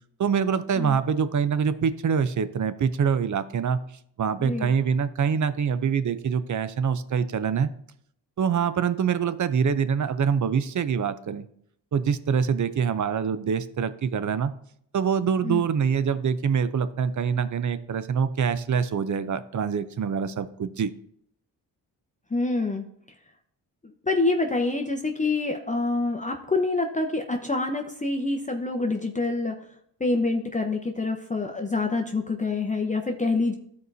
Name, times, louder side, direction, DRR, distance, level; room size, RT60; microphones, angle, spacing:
voice 1, 0.2-3.8 4.2-7.7 8.4-11.5 11.9-14.5 14.9-20.9, right 6 dB, 45° right, 12 dB, 0.6 m, -25 dB
voice 2, 4.4-4.7 15.4-15.6 22.3-22.8 24.0-29.5 30.0-33.5, left 3 dB, 15° left, 3 dB, 0.9 m, -26 dB
13.0 x 4.8 x 2.7 m, 0.69 s
cardioid pair, 60°, 43 cm